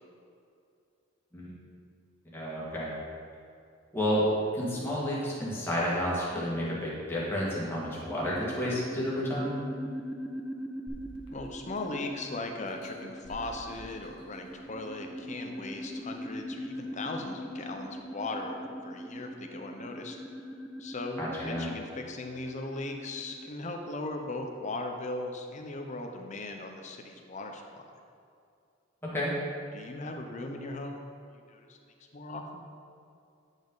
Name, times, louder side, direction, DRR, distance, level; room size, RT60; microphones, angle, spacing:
voice 1, 2.3-2.9 3.9-4.3 4.5-9.5 21.2-21.7 29.1-29.3, equal, 10° left, -7 dB, 1.8 m, -31 dB
sound 1, 7.8-23.5, equal, 5° right, 0.4 m, -41 dB
sound 2, 10.9-12.2 12.7-14.8 15.4-15.5, right 1 dB, 90° left, 1.2 m, -49 dB
voice 2, 11.3-20.2 20.8-27.8 29.7-31.8 32.1-32.7, left 2 dB, 40° left, 3 dB, 0.7 m, -38 dB
9.3 x 5.3 x 3.9 m, 2.4 s
head